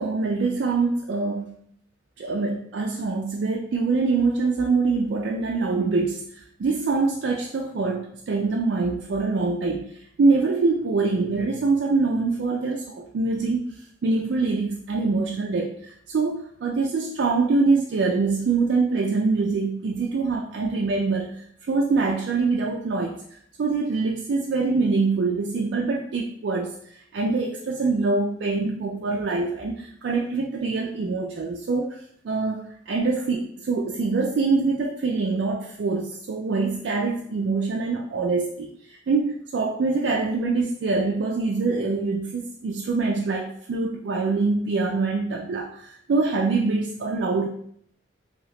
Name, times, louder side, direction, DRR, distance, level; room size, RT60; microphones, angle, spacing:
voice 1, 0.0-1.6 2.2-6.2 6.6-9.9 10.2-13.7 14.0-23.2 23.6-26.7 27.1-47.5, right 3 dB, 65° right, 1 dB, 0.3 m, -24 dB
2.9 x 2.7 x 3.1 m, 0.65 s
head